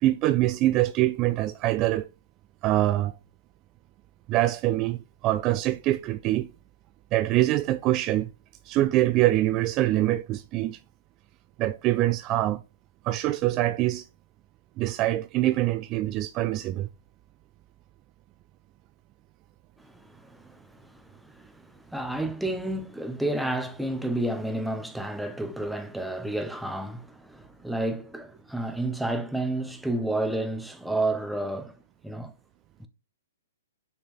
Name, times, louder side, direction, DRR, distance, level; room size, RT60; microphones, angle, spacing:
voice 1, 0.0-2.1 2.6-3.1 4.3-6.5 7.1-8.3 8.6-10.8 11.6-12.6 13.0-14.1 14.8-16.9, right 15 dB, 30° right, 0.4 m, -24 dB
voice 2, 19.8-31.7 32.0-32.3 32.8-32.9, right 1 dB, ahead, 0.9 m, -31 dB
6.3 x 5.8 x 3.6 m
hypercardioid pair, 125°, 0 cm